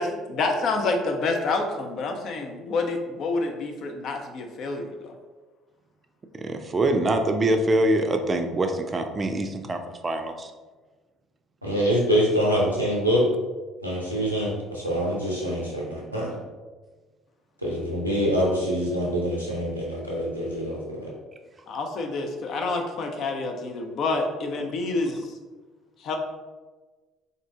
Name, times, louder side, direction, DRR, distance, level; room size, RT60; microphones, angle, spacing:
voice 1, 0.3-5.1 21.7-25.2 26.0-26.2, left 3 dB, 50° left, 3 dB, 0.5 m, -28 dB
voice 2, 6.4-10.5, right 1 dB, 30° right, 6 dB, 0.5 m, -24 dB
voice 3, 11.6-13.2 13.8-16.4 17.6-21.1, equal, 90° right, -4 dB, 0.6 m, -25 dB
3.7 x 2.7 x 3.4 m, 1.3 s
figure-of-eight pair, 55°, 0 cm